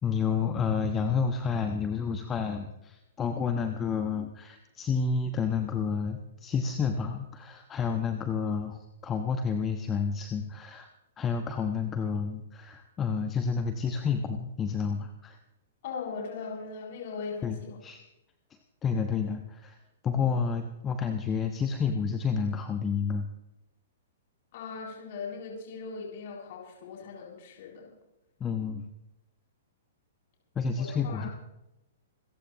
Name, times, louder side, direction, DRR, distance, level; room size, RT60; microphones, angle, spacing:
voice 1, 0.0-10.9 11.2-15.4 17.4-18.0 18.8-19.8 20.0-23.3 28.4-28.8 30.5-31.3, left 6 dB, 20° left, 6 dB, 1.2 m, -30 dB
voice 2, 15.8-17.8 24.5-27.9 30.8-31.3, left 5 dB, 50° left, -3 dB, 7.6 m, -39 dB
27.0 x 15.0 x 3.1 m, 0.92 s
figure-of-eight pair, 110°, 0 cm